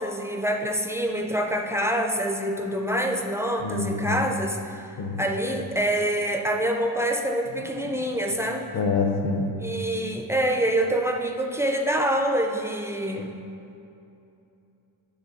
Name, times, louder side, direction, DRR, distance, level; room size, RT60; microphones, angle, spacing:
voice 1, 0.0-8.7 9.6-13.4, right 1 dB, 5° right, 3 dB, 0.3 m, -26 dB
voice 2, 3.6-4.2 5.0-5.2 8.7-9.5, left 3 dB, 60° left, 3 dB, 1.0 m, -26 dB
10.0 x 3.7 x 6.7 m, 2.7 s
wide cardioid pair, 165°, 49 cm